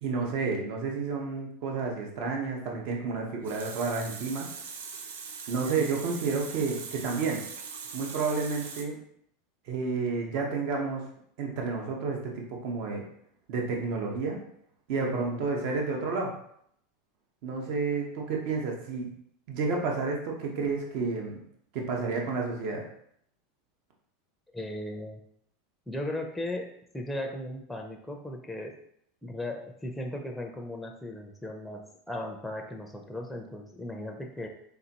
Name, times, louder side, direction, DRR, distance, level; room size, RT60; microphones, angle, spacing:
voice 1, 0.0-4.5 5.5-7.4 7.9-9.0 9.7-11.0 11.4-13.0 13.5-14.4 14.9-16.3 17.4-19.1 19.5-21.4 21.7-22.9, right 4 dB, 60° right, 0 dB, 1.0 m, -30 dB
Water tap faucet, 3.2-8.8, right 6 dB, 90° right, 0.6 m, -41 dB
voice 2, 15.1-15.5 24.5-25.2 25.9-26.7 26.9-28.8 29.2-34.5, left 1 dB, ahead, 2 dB, 0.6 m, -37 dB
3.9 x 3.9 x 2.9 m, 0.69 s
supercardioid pair, 135°, 0 cm